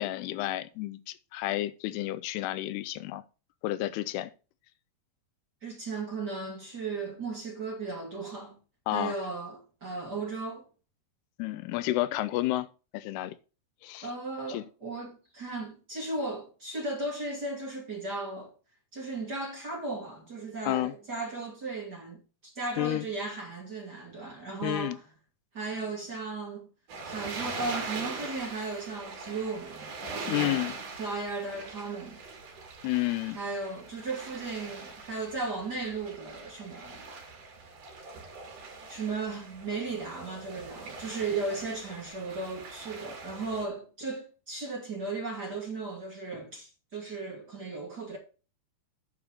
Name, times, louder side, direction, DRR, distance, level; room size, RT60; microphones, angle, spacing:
voice 1, 0.0-3.2 3.6-4.3 8.9-9.1 11.4-12.7 12.9-13.4 13.8-14.1 14.5-14.6 20.7-20.9 22.8-23.1 24.6-25.0 30.3-30.7 32.8-33.4, left 16 dB, 85° left, 2.6 m, -30 dB
voice 2, 5.6-8.6 8.9-10.7 14.0-18.5 18.9-25.1 25.5-26.7 27.1-32.2 33.3-37.0 38.9-48.2, right 3 dB, 30° right, 2.2 m, -36 dB
sound 1, 26.9-43.7, right 4 dB, 55° right, 3.5 m, -42 dB
9.6 x 4.7 x 6.5 m
omnidirectional pair, 4.7 m